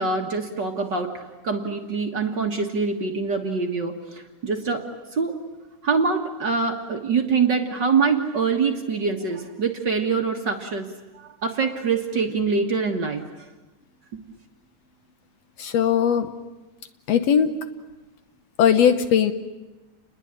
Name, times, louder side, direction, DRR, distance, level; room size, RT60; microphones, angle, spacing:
voice 1, 0.0-4.8 5.1-5.4 5.8-10.9 11.2-13.2, right 5 dB, 45° right, 3 dB, 1.9 m, -24 dB
voice 2, 15.6-16.3 17.1-17.5 18.6-19.3, left 8 dB, 65° left, 9 dB, 2.0 m, -19 dB
29.0 x 21.0 x 8.8 m, 1.1 s
omnidirectional pair, 3.4 m